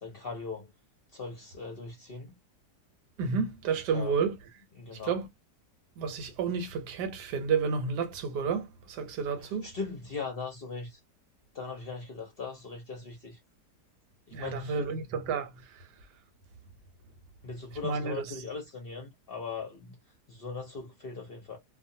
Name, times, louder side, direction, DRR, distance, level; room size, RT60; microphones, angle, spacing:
voice 1, 0.0-0.7 1.1-2.4 3.9-4.1 4.8-5.1 9.6-11.0 11.5-13.4 14.3-14.9 17.4-20.0 20.3-21.6, left 4 dB, 50° left, 0.7 m, -39 dB
voice 2, 3.2-4.4 5.0-5.3 6.0-9.7 14.3-15.9 17.8-18.2, right 5 dB, 90° right, 1.3 m, -31 dB
2.5 x 2.4 x 2.6 m
omnidirectional pair, 1.7 m